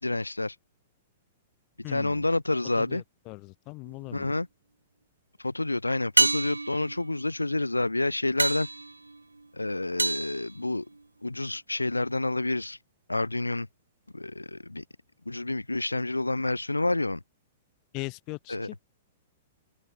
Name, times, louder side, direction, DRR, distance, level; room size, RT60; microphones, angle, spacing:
voice 1, 0.0-0.5 1.9-3.0 4.1-4.5 5.4-8.7 9.5-10.9 11.2-12.8 13.1-13.7 14.1-14.8 15.2-17.2 18.5-18.7, left 2 dB, 90° left, 5.0 m, -28 dB
voice 2, 1.8-2.2 2.8-4.3 17.9-18.8, left 27 dB, 40° left, 5.7 m, -39 dB
sound 1, 3.8-4.4 6.2-11.3 15.8-15.9, right 3 dB, 85° right, 1.9 m, -30 dB
open air
figure-of-eight pair, 105°, 0 cm